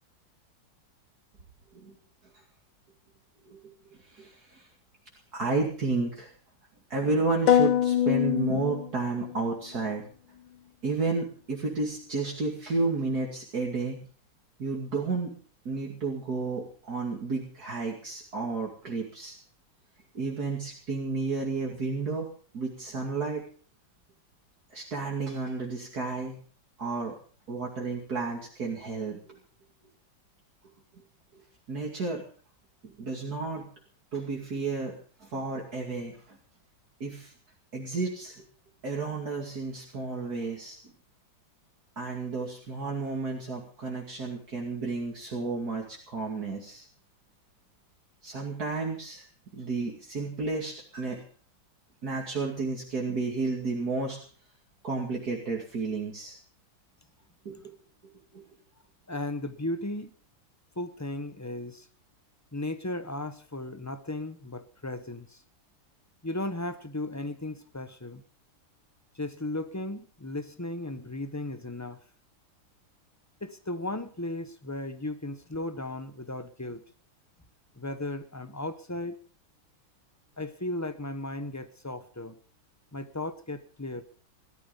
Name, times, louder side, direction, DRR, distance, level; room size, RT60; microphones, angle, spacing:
voice 1, 4.1-4.7 5.3-6.3 6.9-10.1 10.8-14.0 14.6-15.3 15.6-19.4 20.1-22.3 22.5-23.5 24.7-26.4 26.8-27.2 27.5-29.4 31.3-31.4 31.7-32.2 32.8-33.7 34.1-36.4 37.0-37.3 37.7-38.4 38.8-40.8 42.0-46.9 48.2-49.2 49.5-51.2 52.0-54.2 54.8-56.4 57.4-57.7 58.3-58.4, right 3 dB, 50° right, -1 dB, 3.0 m, -32 dB
sound 1, 7.5-9.4, left 10 dB, 80° left, 1.7 m, -24 dB
voice 2, 59.1-60.1 60.8-61.9 62.5-65.4 66.2-68.2 69.1-72.0 73.4-76.8 77.8-79.2 80.4-82.4 82.9-84.0, left 2 dB, 15° left, 11 dB, 0.5 m, -35 dB
18.0 x 13.0 x 5.3 m, 0.42 s
omnidirectional pair, 2.1 m